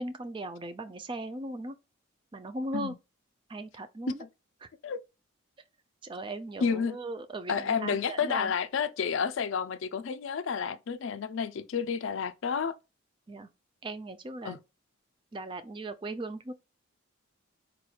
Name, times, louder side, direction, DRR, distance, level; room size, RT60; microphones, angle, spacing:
voice 1, 0.0-1.8 2.3-2.9 3.5-4.2 6.0-8.5 13.3-13.5 13.8-14.6 15.3-16.5, right 2 dB, 25° right, 0.3 m, -38 dB
voice 2, 6.6-7.0 7.5-12.8 14.4-14.6, left 6 dB, 65° left, 0.4 m, -30 dB
4.1 x 2.9 x 2.3 m
head